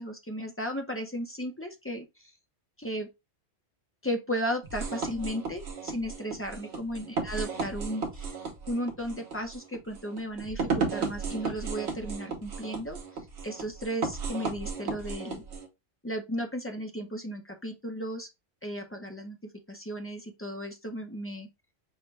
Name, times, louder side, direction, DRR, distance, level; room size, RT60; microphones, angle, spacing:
voice 1, 0.0-2.3 2.8-3.1 4.0-8.3 8.7-13.0 13.4-15.4 16.0-18.3 18.6-19.4 19.7-21.5, equal, 15° left, 0.5 m, -35 dB
sound 1, 4.6-15.7, right 4 dB, 65° right, 1.1 m, -34 dB
5.6 x 2.2 x 3.1 m
omnidirectional pair, 1.2 m